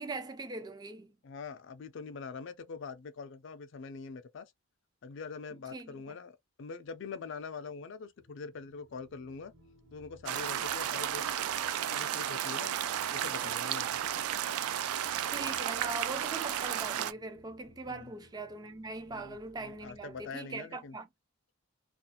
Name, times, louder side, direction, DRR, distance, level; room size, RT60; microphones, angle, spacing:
voice 1, 0.0-1.1 5.7-6.0 15.3-21.1, right 2 dB, 20° right, 0.4 m, -41 dB
voice 2, 1.2-4.5 5.0-9.5 9.9-11.2 11.9-12.7 13.1-14.2 17.8-18.1 19.1-21.0, left 5 dB, 60° left, 0.4 m, -44 dB
sound 1, 8.2-20.3, equal, 60° right, 1.0 m, -61 dB
sound 2, 10.3-17.1, right 10 dB, 90° right, 0.3 m, -33 dB
2.4 x 2.4 x 2.7 m
head